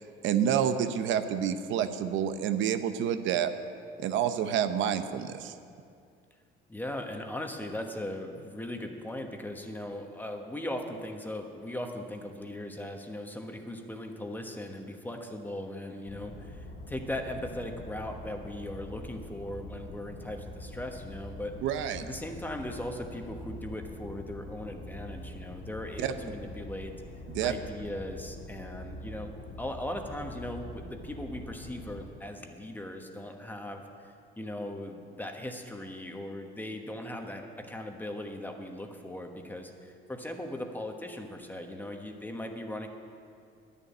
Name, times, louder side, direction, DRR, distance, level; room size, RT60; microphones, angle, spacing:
voice 1, 0.2-3.5 4.0-5.5 21.6-22.0 26.0-26.1 27.3-27.5, right 9 dB, 70° right, 9 dB, 0.8 m, -28 dB
voice 2, 6.7-21.6 22.0-26.9 27.4-29.3 29.6-42.9, left 1 dB, 10° left, 4 dB, 1.2 m, -39 dB
sound 1, 16.1-32.1, left 1 dB, 50° left, 2.0 m, -44 dB
11.0 x 7.2 x 9.5 m, 2.3 s
cardioid pair, 110°, 20 cm